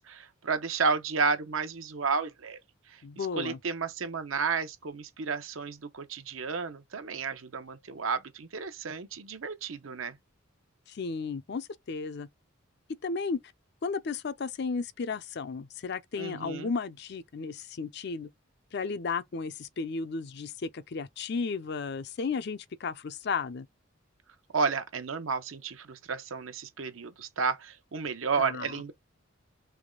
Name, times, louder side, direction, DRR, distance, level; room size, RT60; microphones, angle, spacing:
voice 1, 0.0-2.6 2.9-10.2 16.2-16.7 24.5-28.9, right 5 dB, 80° right, 0.8 m, -32 dB
voice 2, 3.0-3.6 10.9-12.3 13.0-13.4 13.8-18.3 18.7-23.7 28.4-28.7, left 4 dB, 55° left, 0.5 m, -34 dB
3.5 x 3.2 x 3.7 m
head